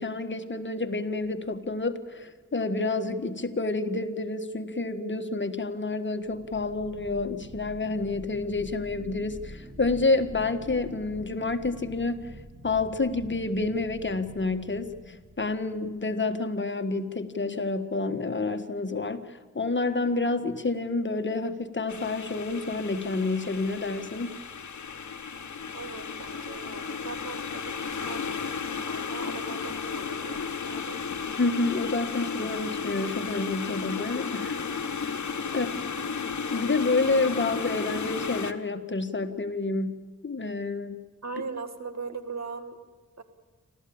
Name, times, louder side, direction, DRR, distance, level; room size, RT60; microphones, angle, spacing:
voice 1, 0.0-12.2 12.6-24.4 31.4-34.6 34.9-35.1 35.5-35.7 36.5-39.9 40.2-41.0, left 3 dB, 40° left, 8 dB, 1.6 m, -29 dB
sound 1, 1.2-1.8 6.2-16.4, equal, 25° right, 3.7 m, -46 dB
sound 2, 21.9-38.5, left 6 dB, 70° left, 1.3 m, -34 dB
voice 2, 25.7-31.0 35.4-36.1 41.2-42.8 43.2-43.3, right 4 dB, 60° right, 9 dB, 2.0 m, -40 dB
28.0 x 13.5 x 8.8 m, 1.4 s
cardioid pair, 60°, 30 cm